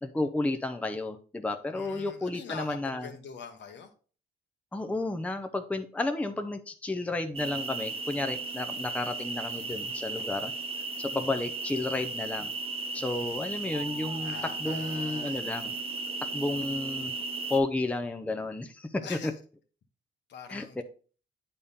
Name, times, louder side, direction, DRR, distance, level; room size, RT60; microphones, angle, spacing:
voice 1, 0.0-3.1 4.7-10.5 11.0-12.5 12.9-14.3 14.6-15.7 16.2-17.1 17.5-19.3 20.5-20.8, left 2 dB, 5° left, 6 dB, 0.6 m, -32 dB
voice 2, 1.7-3.9 13.0-13.5 14.2-15.4 19.0-19.3 20.3-20.8, left 6 dB, 65° left, 6 dB, 1.1 m, -44 dB
sound 1, 7.3-17.6, right 3 dB, 30° right, 0.9 m, -35 dB
8.5 x 3.6 x 4.1 m, 0.39 s
cardioid pair, 90°, 20 cm